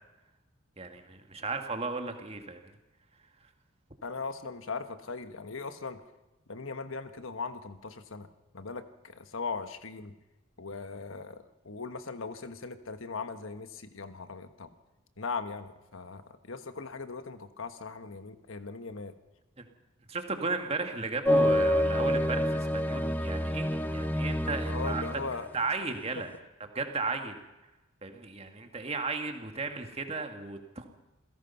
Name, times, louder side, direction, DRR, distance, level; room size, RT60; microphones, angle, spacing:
voice 1, 0.8-2.6 19.6-19.7 20.1-25.1 25.5-26.3 26.7-27.4 28.0-30.9, right 3 dB, 30° right, 5 dB, 1.9 m, -35 dB
voice 2, 4.0-6.0 6.5-8.3 8.5-10.2 10.6-14.7 15.2-19.1 24.7-25.5, left 4 dB, 70° left, 10 dB, 1.3 m, -39 dB
sound 1, 21.2-25.4, equal, 10° left, 1.0 m, -27 dB
28.0 x 16.5 x 5.7 m, 1.0 s
head